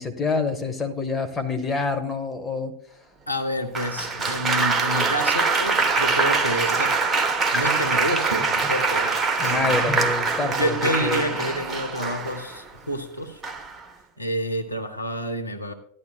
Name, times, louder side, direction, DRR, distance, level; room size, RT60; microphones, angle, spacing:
voice 1, 0.0-2.7 9.4-10.7 11.0-11.3, left 3 dB, 15° left, 3 dB, 1.4 m, -26 dB
voice 2, 3.3-7.0 7.5-9.1 9.4-9.9 10.5-13.4 14.2-15.7, equal, 90° left, 6 dB, 0.9 m, -28 dB
Applause, 3.7-12.6 13.4-13.8, right 4 dB, 20° right, 1.1 m, -24 dB
sound 1, 6.3-13.6, right 1 dB, 5° right, 0.8 m, -40 dB
15.0 x 11.0 x 2.3 m, 0.64 s
figure-of-eight pair, 85°, 0 cm